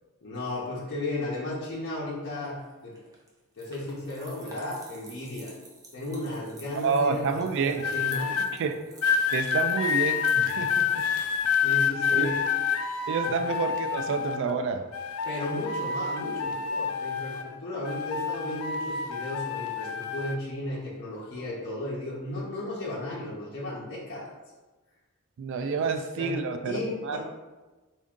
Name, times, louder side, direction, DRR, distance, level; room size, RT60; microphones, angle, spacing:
voice 1, 0.2-3.0 3.6-5.5 5.9-8.3 11.5-12.4 13.2-13.3 15.3-24.3 25.7-26.4 26.7-27.2, left 1 dB, 55° left, -6 dB, 0.7 m, -35 dB
sound 1, 1.8-11.8, right 2 dB, 15° right, 0.6 m, -52 dB
voice 2, 6.7-7.8 8.5-8.8 9.3-11.0 12.1-12.3 13.1-14.8 25.4-27.2, right 5 dB, 60° right, 8 dB, 0.3 m, -29 dB
sound 2, 7.8-8.5 9.0-14.5 14.9-17.5 17.8-20.4 21.1-21.4, left 7 dB, 80° left, 0.4 m, -28 dB
3.5 x 2.6 x 3.6 m, 1.2 s
head